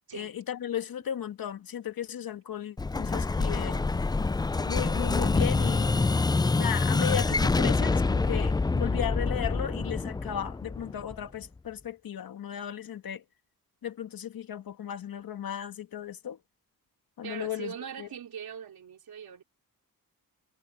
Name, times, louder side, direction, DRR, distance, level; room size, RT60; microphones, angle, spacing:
voice 1, 0.1-3.8 4.6-6.2 6.6-13.2 13.8-16.4 17.2-17.7 18.0-18.1, left 10 dB, 75° left, 1.7 m, -35 dB
Explosion, 2.8-11.4, left 3 dB, 15° left, 0.3 m, -26 dB
voice 2, 17.2-19.4, right 8 dB, 85° right, 4.6 m, -41 dB
wide cardioid pair, 105°, 35 cm